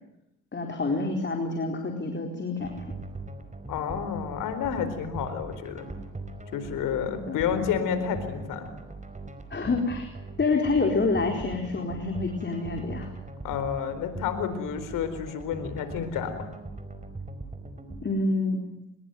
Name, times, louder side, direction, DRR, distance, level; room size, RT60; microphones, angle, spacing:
voice 1, 0.5-2.7 7.1-7.4 9.5-10.1 10.4-13.1 18.0-18.6, left 3 dB, 35° left, 3 dB, 4.4 m, -27 dB
sound 1, 2.6-18.0, right 2 dB, 25° right, 4.8 m, -40 dB
voice 2, 3.7-5.9 6.5-8.7 13.4-16.5, left 8 dB, 90° left, 11 dB, 4.2 m, -30 dB
26.0 x 22.0 x 9.4 m, 0.88 s
cardioid pair, 75°, 31 cm